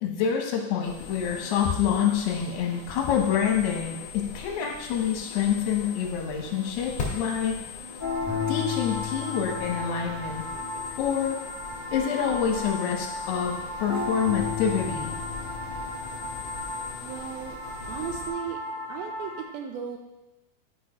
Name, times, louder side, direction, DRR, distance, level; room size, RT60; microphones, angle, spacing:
voice 1, 0.0-7.6 8.5-10.4 11.0-11.4 11.9-15.1, left 8 dB, 85° left, 1 dB, 3.3 m, -27 dB
sound 1, 0.8-18.3, left 6 dB, 55° left, 3.2 m, -40 dB
sound 2, 8.0-19.4, left 3 dB, 20° left, 1.3 m, -34 dB
voice 2, 17.0-17.6 17.9-18.6 18.9-20.0, right 8 dB, 80° right, 4 dB, 2.5 m, -35 dB
12.0 x 4.4 x 5.2 m, 1.0 s
omnidirectional pair, 4.5 m